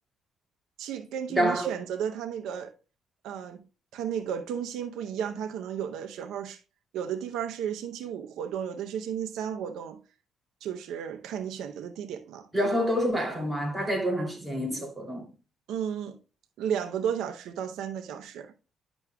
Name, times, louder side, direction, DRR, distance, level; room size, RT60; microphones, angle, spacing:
voice 1, 0.8-2.7 3.2-3.6 3.9-6.6 6.9-10.0 10.6-12.5 15.7-16.2 16.6-18.5, right 8 dB, 85° right, 0.7 m, -33 dB
voice 2, 1.3-1.8 12.5-15.3, equal, 10° right, 3.0 m, -27 dB
10.5 x 6.1 x 2.3 m
cardioid pair, 90°, 0 cm